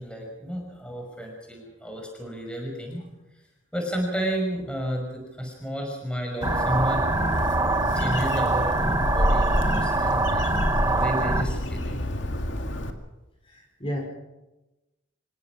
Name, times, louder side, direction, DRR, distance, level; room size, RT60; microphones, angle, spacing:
voice 1, 0.0-3.0 3.7-7.1 7.9-12.0, equal, 5° left, 1 dB, 5.7 m, -32 dB
Bird, 6.4-12.9, left 1 dB, 70° left, 2.2 m, -28 dB
sound 1, 6.4-11.4, right 3 dB, 15° right, 1.3 m, -25 dB
voice 2, 13.4-14.0, equal, 30° left, 0 dB, 5.3 m, -33 dB
27.0 x 16.5 x 6.1 m, 1.0 s
head